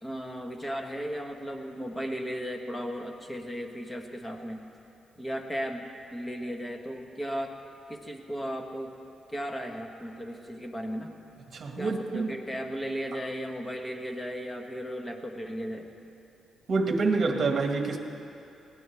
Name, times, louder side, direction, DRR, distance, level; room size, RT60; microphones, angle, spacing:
voice 1, 0.0-4.6 5.2-7.6 7.9-8.9 9.3-11.1 11.8-15.9, equal, 15° left, 3 dB, 1.5 m, -35 dB
voice 2, 11.5-12.3 16.7-18.0, right 3 dB, 45° right, 2 dB, 1.9 m, -27 dB
21.5 x 17.0 x 3.5 m, 2.7 s
cardioid pair, 110°, 0 cm